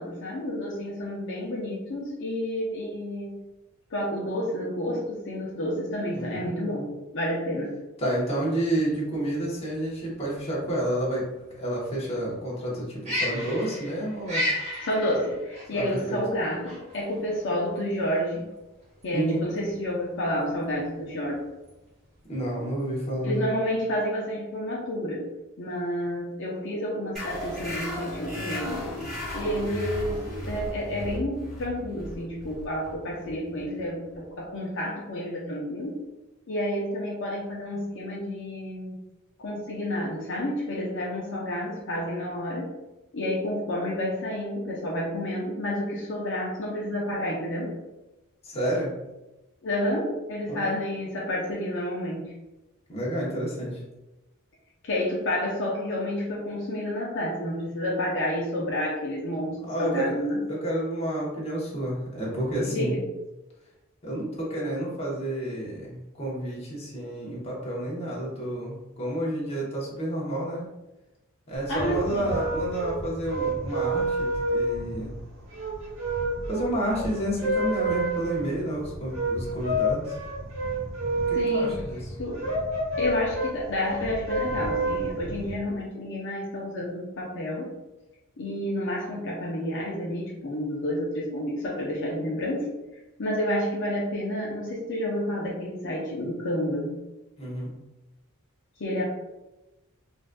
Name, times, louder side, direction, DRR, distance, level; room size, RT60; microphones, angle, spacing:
voice 1, 0.0-3.4 3.9-7.8 14.8-18.5 19.0-21.4 23.2-25.3 25.6-28.9 29.3-36.0 36.5-38.9 39.4-42.8 43.1-47.7 49.6-52.3 54.8-60.4 62.6-63.0 71.7-72.3 81.3-81.8 82.2-82.4 83.0-87.7 88.4-92.7 93.2-97.0 98.8-99.0, left 1 dB, 60° left, -4 dB, 0.7 m, -30 dB
voice 2, 6.1-6.5 8.0-14.5 15.7-16.2 19.1-19.4 22.3-23.5 48.4-48.9 50.5-50.8 52.9-53.8 59.7-60.2 60.5-62.9 64.0-70.6 71.5-75.2 76.5-80.1 81.3-82.2 97.4-97.7, right 1 dB, 30° left, -5 dB, 0.9 m, -30 dB
sound 1, 8.8-23.2, left 1 dB, 30° right, 1.0 m, -36 dB
sound 2, 27.1-34.3, equal, ahead, 1.4 m, -35 dB
sound 3, 71.6-85.5, right 1 dB, 65° right, 1.1 m, -29 dB
3.8 x 2.5 x 2.2 m, 1.0 s
head